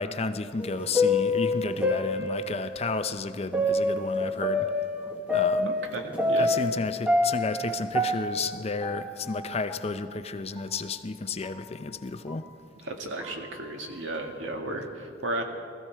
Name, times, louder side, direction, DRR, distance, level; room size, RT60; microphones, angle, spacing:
voice 1, 0.0-4.7 5.3-5.7 6.4-12.5, left 3 dB, 35° left, 0.5 m, -32 dB
sound 1, 0.6-2.8 3.5-6.8 7.1-9.4 9.7-9.8 10.6-10.7 11.4-11.6 12.3-12.4 13.2-13.5, left 2 dB, 5° right, 1.3 m, -27 dB
voice 2, 5.7-6.5 12.8-15.4, right 1 dB, 75° right, 1.8 m, -34 dB
20.0 x 14.5 x 4.6 m
head